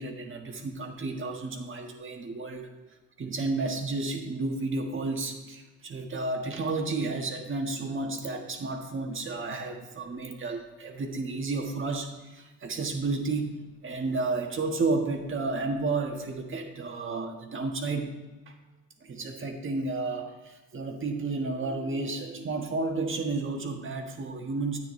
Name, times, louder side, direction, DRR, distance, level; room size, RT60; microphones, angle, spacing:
voice 1, 0.0-2.7 3.2-18.1 18.5-18.6 19.0-24.8, right 3 dB, 40° right, 3 dB, 1.5 m, -32 dB
10.5 x 9.1 x 3.2 m, 1.1 s
cardioid pair, 90°, 30 cm